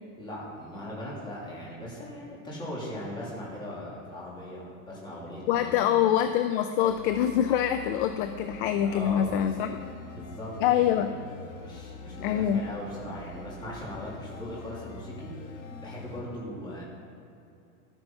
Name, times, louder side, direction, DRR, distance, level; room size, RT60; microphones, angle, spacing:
voice 1, 0.2-6.0 8.8-9.7 10.0-15.5 15.8-16.8, left 1 dB, 10° left, -6 dB, 3.0 m, -39 dB
voice 2, 5.5-9.8 10.6-11.1 12.2-12.6, left 10 dB, 40° left, 8 dB, 0.5 m, -25 dB
sound 1, 6.9-16.2, left 3 dB, 80° left, 2.9 m, -44 dB
12.5 x 9.0 x 5.6 m, 2.6 s
supercardioid pair, 165°, 41 cm